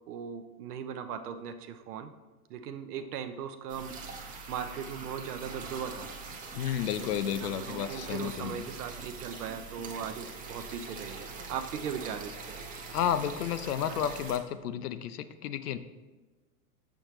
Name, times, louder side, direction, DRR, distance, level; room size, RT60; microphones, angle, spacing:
voice 1, 0.1-2.1 2.5-6.1 7.0-12.6, right 7 dB, 85° right, 8 dB, 0.6 m, -39 dB
sound 1, 3.7-14.4, right 4 dB, 20° right, 0.5 m, -43 dB
voice 2, 6.5-8.7 12.9-15.8, left 9 dB, 85° left, 12 dB, 0.5 m, -32 dB
7.0 x 5.1 x 3.0 m, 1.2 s
hypercardioid pair, 110°, 45 cm